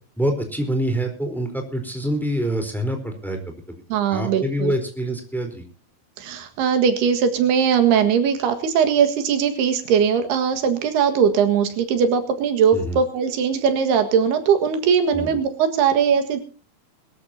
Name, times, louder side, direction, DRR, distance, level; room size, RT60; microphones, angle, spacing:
voice 1, 0.2-3.8 4.1-5.6 12.7-13.0 15.1-15.4, right 1 dB, ahead, 4 dB, 3.4 m, -26 dB
voice 2, 3.9-4.7 6.2-16.4, right 7 dB, 80° right, 8 dB, 3.7 m, -20 dB
22.5 x 13.5 x 2.8 m, 0.37 s
omnidirectional pair, 4.5 m